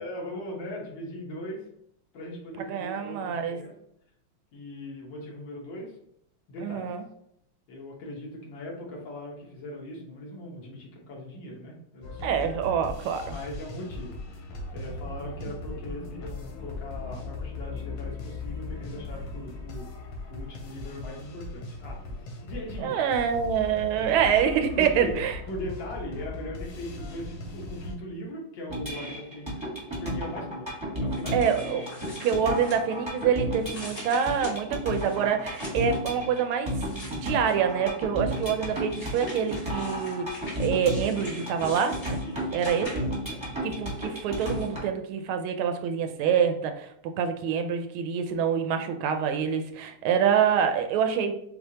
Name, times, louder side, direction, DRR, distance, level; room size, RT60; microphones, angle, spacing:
voice 1, 0.0-1.6 2.1-3.7 4.5-6.0 6.5-6.9 7.7-12.4 13.2-14.5 14.7-19.9 20.3-22.2 22.4-23.0 24.8-25.1 25.5-29.6 30.0-31.6 42.2-43.0 43.3-43.4, left 1 dB, 65° left, -2 dB, 1.8 m, -39 dB
voice 2, 2.6-3.6 6.6-7.0 12.2-13.3 22.8-25.4 31.3-31.9 32.2-36.7 37.1-42.2 42.5-43.1 43.6-51.3, right 7 dB, 80° right, 6 dB, 1.4 m, -26 dB
sound 1, 12.0-28.0, left 2 dB, 85° left, 1.8 m, -38 dB
sound 2, 28.7-44.9, equal, 20° right, 0.9 m, -33 dB
sound 3, 31.1-33.2 33.6-36.0 36.7-37.7 38.3-43.3 43.9-44.7, left 1 dB, 35° left, 2.0 m, -45 dB
6.5 x 2.4 x 2.8 m, 0.72 s
omnidirectional pair, 2.4 m